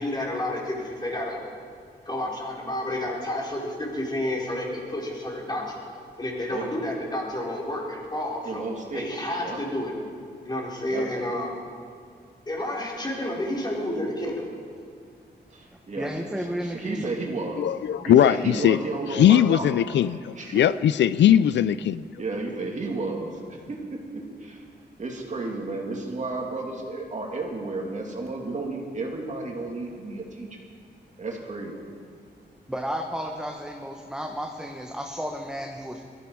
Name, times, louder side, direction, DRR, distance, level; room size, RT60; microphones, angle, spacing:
voice 1, 0.0-1.4 2.1-5.8 6.2-8.6 8.9-9.9 10.4-11.5 12.5-14.5, left 1 dB, 25° left, -4 dB, 4.3 m, -30 dB
voice 2, 8.4-9.1 9.4-9.6 10.9-11.1 15.5-16.1 16.4-17.6 18.0-19.8 20.4-20.6 22.2-24.6 25.0-30.5 31.2-31.8, right 3 dB, 40° right, 0 dB, 2.4 m, -32 dB
voice 3, 16.0-17.1 32.7-36.0, equal, 5° right, 2 dB, 1.1 m, -32 dB
voice 4, 17.6-18.8 19.1-20.1 20.5-22.0, left 10 dB, 85° left, 16 dB, 0.4 m, -19 dB
22.0 x 14.0 x 4.7 m, 2.3 s
wide cardioid pair, 125°, 18 cm